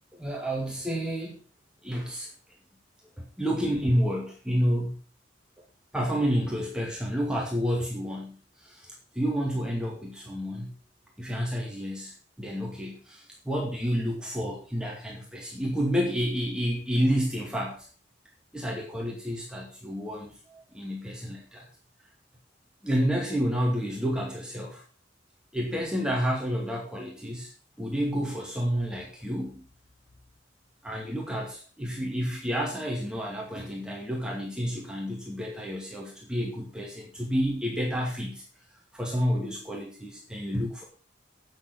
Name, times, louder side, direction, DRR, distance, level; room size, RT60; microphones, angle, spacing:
voice 1, 0.1-1.4 1.8-2.3 3.2-5.0 5.9-10.7 11.2-17.9 18.5-21.7 22.8-24.8 25.5-27.5 27.8-29.6 30.8-38.4 38.9-40.8, equal, 5° right, -3 dB, 2.3 m, -30 dB
9.3 x 7.2 x 6.4 m, 0.38 s
head